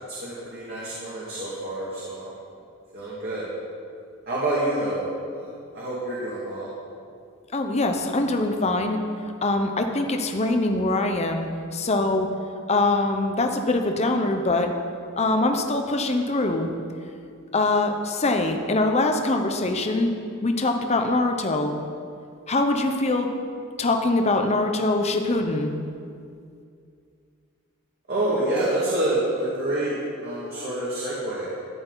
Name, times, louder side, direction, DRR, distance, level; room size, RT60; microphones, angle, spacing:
voice 1, 0.1-2.3 2.9-3.4 4.3-6.7 28.1-31.6, right 1 dB, 50° right, -8 dB, 2.3 m, -27 dB
voice 2, 7.5-9.0 9.4-12.3 12.7-14.7 15.2-16.7 17.5-20.1 20.4-21.7 22.5-23.3 23.8-25.7, left 2 dB, 30° left, 4 dB, 0.9 m, -23 dB
14.0 x 10.0 x 4.0 m, 2.4 s
head